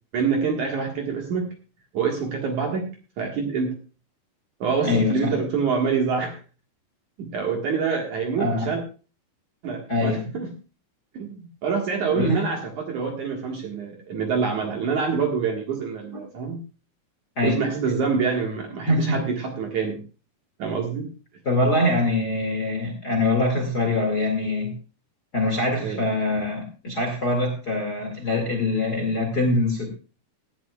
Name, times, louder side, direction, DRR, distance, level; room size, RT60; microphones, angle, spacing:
voice 1, 0.1-1.5 1.9-2.9 3.2-3.7 4.6-6.4 7.2-8.8 9.6-10.5 11.1-16.6 17.4-20.0 20.6-21.1 25.8-26.1, right 5 dB, 55° right, 1 dB, 2.6 m, -26 dB
voice 2, 4.8-5.3 8.4-8.7 9.9-10.3 12.1-12.4 17.4-17.6 18.9-19.2 21.5-24.7 25.3-29.9, left 2 dB, 30° left, 3 dB, 1.9 m, -23 dB
18.0 x 11.5 x 2.4 m, 0.34 s
omnidirectional pair, 5.1 m